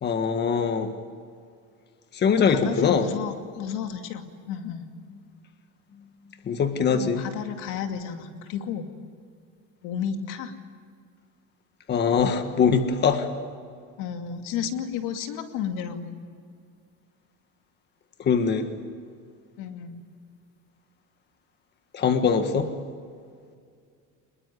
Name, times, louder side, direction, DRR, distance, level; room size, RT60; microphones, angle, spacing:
voice 1, 0.0-0.9 2.1-3.1 6.5-7.2 11.9-13.3 18.2-18.7 21.9-22.7, left 6 dB, 35° left, 8 dB, 1.6 m, -22 dB
voice 2, 2.5-4.8 6.9-8.9 9.8-10.5 14.0-16.2 19.6-20.0, left 8 dB, 90° left, 6 dB, 2.5 m, -32 dB
25.5 x 21.5 x 9.5 m, 2.2 s
cardioid pair, 155°, 31 cm